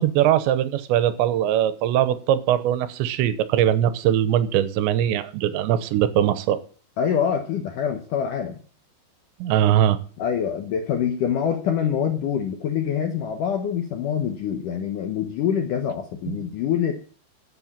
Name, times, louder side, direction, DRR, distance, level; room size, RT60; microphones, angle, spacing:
voice 1, 0.0-6.6 9.4-10.0 16.3-16.4, right 11 dB, 85° right, 3.1 m, -21 dB
voice 2, 7.0-8.6 10.2-16.9, left 8 dB, 75° left, 1.9 m, -25 dB
12.5 x 7.8 x 7.3 m
omnidirectional pair, 5.1 m